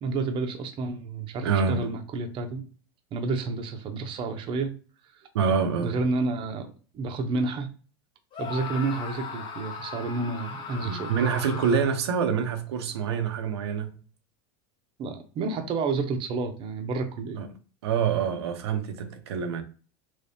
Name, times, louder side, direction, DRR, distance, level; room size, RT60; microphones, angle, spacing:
voice 1, 0.0-2.6 3.1-4.7 5.8-7.7 8.4-11.1 15.0-17.4, right 3 dB, 40° right, 0.7 m, -30 dB
voice 2, 1.4-1.9 5.3-6.0 10.8-13.9 17.4-17.5 17.8-19.6, right 6 dB, 90° right, 0.6 m, -26 dB
Screaming, 8.3-12.1, left 5 dB, 40° left, 0.9 m, -38 dB
3.4 x 3.1 x 2.7 m
supercardioid pair, 115°, 14 cm